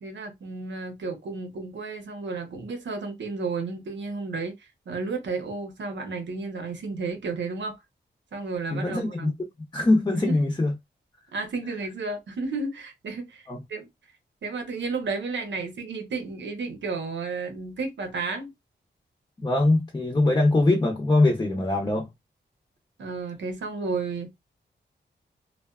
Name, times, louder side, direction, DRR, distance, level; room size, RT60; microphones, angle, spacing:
voice 1, 0.0-7.8 8.3-9.3 10.2-10.3 11.3-13.9 14.4-18.5 23.0-24.3, right 4 dB, 75° right, 0.9 m, -32 dB
voice 2, 8.7-9.3 9.7-10.7 13.5-13.6 19.4-22.1, left 2 dB, 20° left, 0.7 m, -22 dB
2.4 x 2.3 x 2.3 m
cardioid pair, 75°, 19 cm